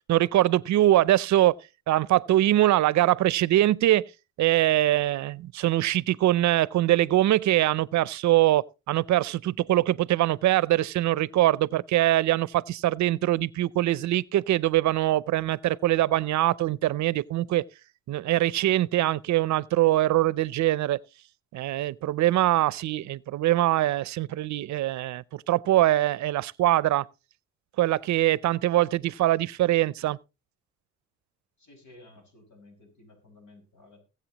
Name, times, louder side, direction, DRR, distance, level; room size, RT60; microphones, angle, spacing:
voice 1, 0.1-1.6 1.9-4.0 4.4-17.6 18.1-21.0 21.5-27.0 27.8-30.2, right 14 dB, 65° right, 0.6 m, -23 dB
voice 2, 31.6-34.0, left 2 dB, 70° left, 6.0 m, -54 dB
20.5 x 7.8 x 2.9 m
cardioid pair, 90°, 30 cm